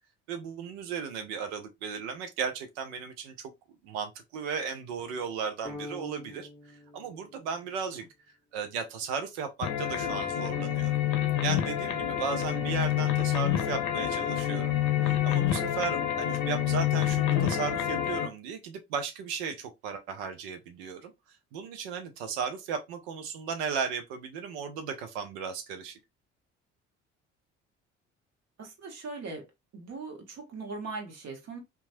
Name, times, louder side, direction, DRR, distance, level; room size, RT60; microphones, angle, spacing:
voice 1, 0.3-3.5 3.8-8.0 8.5-10.9 11.4-14.7 15.0-21.1 21.5-26.0, right 6 dB, 75° right, 0.6 m, -35 dB
sound 1, 5.6-8.0, left 2 dB, ahead, 0.8 m, -45 dB
sound 2, 9.6-18.3, left 11 dB, 65° left, 0.7 m, -28 dB
voice 2, 28.6-29.5 29.7-31.6, right 3 dB, 50° right, 1.3 m, -40 dB
2.9 x 2.3 x 2.6 m
hypercardioid pair, 55°, 33 cm